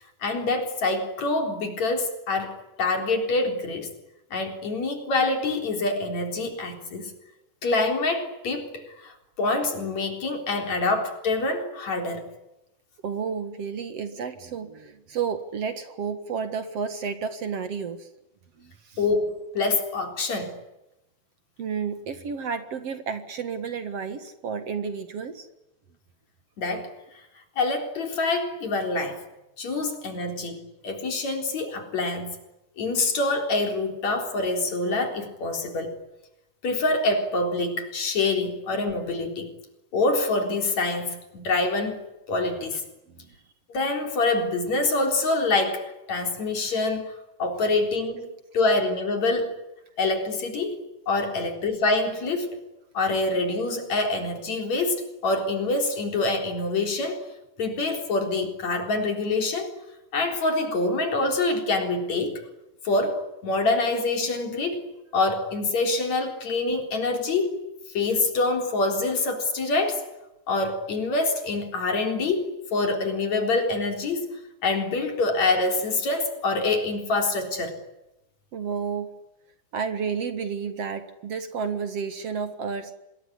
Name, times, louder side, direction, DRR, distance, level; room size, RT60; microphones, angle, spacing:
voice 1, 0.2-3.9 4.3-7.1 7.6-12.3 19.0-20.6 26.6-26.9 27.6-29.2 29.6-32.4 32.8-35.9 36.6-39.5 39.9-42.0 42.3-42.8 43.7-47.1 47.4-48.3 48.5-49.5 50.0-50.8 51.1-52.6 53.0-57.3 57.6-59.7 60.1-62.4 62.9-64.8 65.1-67.6 67.9-70.1 70.5-77.8, left 3 dB, 60° left, 5 dB, 5.1 m, -26 dB
voice 2, 13.0-18.1 18.6-19.0 21.6-25.5 43.1-43.3 78.5-79.2 79.7-82.9, right 6 dB, 55° right, 10 dB, 2.5 m, -31 dB
26.5 x 21.5 x 10.0 m, 0.94 s
omnidirectional pair, 3.5 m